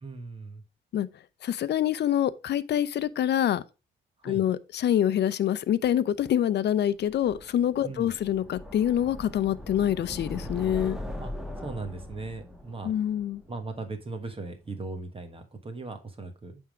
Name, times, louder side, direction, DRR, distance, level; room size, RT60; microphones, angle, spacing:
voice 1, 0.0-0.6 4.2-4.4 7.8-8.1 11.2-11.3 11.6-12.9 13.5-16.7, right 3 dB, 30° right, 1.3 m, -38 dB
voice 2, 1.4-3.6 4.2-11.0 12.8-13.4, left 10 dB, 60° left, 0.6 m, -26 dB
sound 1, 7.1-14.1, left 1 dB, ahead, 1.3 m, -40 dB
8.7 x 3.7 x 4.9 m
cardioid pair, 90°, 20 cm